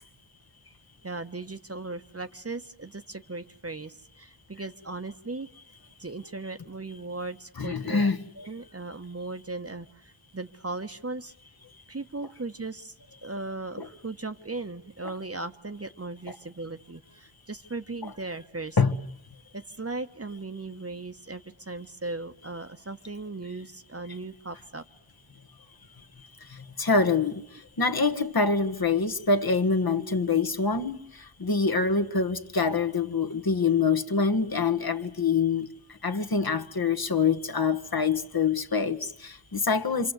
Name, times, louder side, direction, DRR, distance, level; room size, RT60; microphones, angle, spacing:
voice 1, 1.0-5.5 6.0-8.1 8.3-11.3 11.9-13.0 13.2-18.8 19.5-24.8 30.0-30.3 32.1-32.3 34.1-34.3, right 3 dB, 30° right, 1.2 m, -37 dB
voice 2, 7.6-8.2 13.8-13.9 18.8-19.0 26.5-27.4 27.8-35.7 36.0-40.1, left 4 dB, 45° left, 1.6 m, -25 dB
27.5 x 25.0 x 8.2 m
cardioid pair, 40°, 49 cm